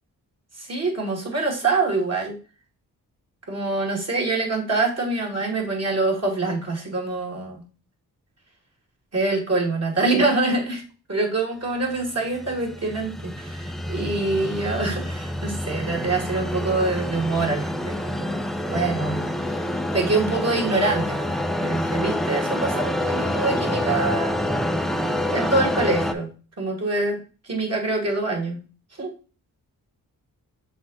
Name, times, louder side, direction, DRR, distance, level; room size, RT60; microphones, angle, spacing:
voice 1, 0.6-2.4 3.5-7.6 9.1-10.8 11.1-19.2 19.9-24.4 25.3-26.3 26.6-28.6 29.0-29.1, right 3 dB, 40° right, 0 dB, 2.6 m, -25 dB
sound 1, 12.0-26.1, left 1 dB, ahead, 0.7 m, -27 dB
6.1 x 3.8 x 4.0 m, 0.35 s
supercardioid pair, 45°, 38 cm